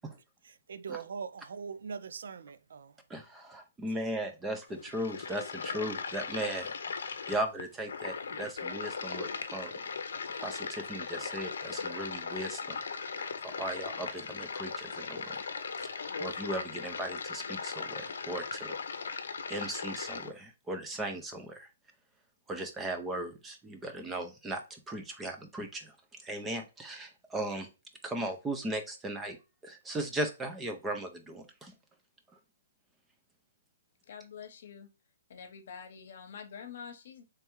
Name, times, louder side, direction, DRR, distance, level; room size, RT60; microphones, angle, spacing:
voice 1, 0.4-3.0, right 6 dB, 70° right, 0.4 m, -41 dB
voice 2, 3.1-6.7 7.0-9.8 10.4-15.4 15.8-15.9 16.2-18.8 19.5-21.7 22.5-26.0 26.2-27.7 28.0-29.4 29.6-31.8, right 1 dB, 10° right, 0.5 m, -37 dB
sound 1, 4.7-20.3, left 5 dB, 80° left, 0.6 m, -38 dB
voice 3, 34.0-34.9 35.3-37.2, left 7 dB, 55° left, 0.9 m, -46 dB
3.4 x 3.2 x 3.0 m
hypercardioid pair, 165°, 0 cm